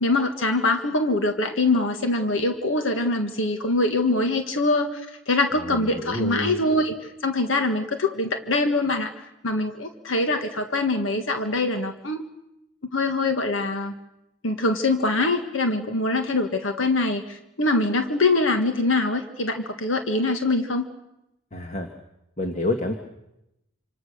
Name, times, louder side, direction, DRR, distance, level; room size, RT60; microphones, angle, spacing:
voice 1, 0.0-6.9 7.2-12.2 12.9-13.9 14.4-20.9, left 2 dB, 90° left, 6 dB, 1.7 m, -23 dB
voice 2, 5.6-6.6 21.5-21.9 22.4-22.9, left 2 dB, 35° left, 4 dB, 1.7 m, -28 dB
27.0 x 26.5 x 6.7 m, 0.88 s
head